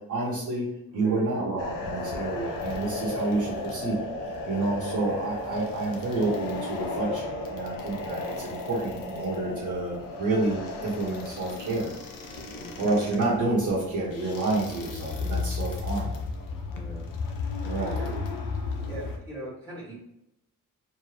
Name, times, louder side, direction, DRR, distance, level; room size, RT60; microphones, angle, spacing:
voice 1, 0.1-0.7 0.9-4.1 4.5-11.9 12.8-16.2 17.6-18.0, right 2 dB, 65° right, -6 dB, 1.2 m, -29 dB
voice 2, 0.9-1.3 12.4-12.9 16.7-17.1 17.6-18.1 18.9-19.9, right 1 dB, 15° left, -12 dB, 1.5 m, -40 dB
sound 1, 1.6-19.2, left 3 dB, 80° left, 0.7 m, -34 dB
4.4 x 2.9 x 3.3 m, 0.81 s
wide cardioid pair, 170°, 33 cm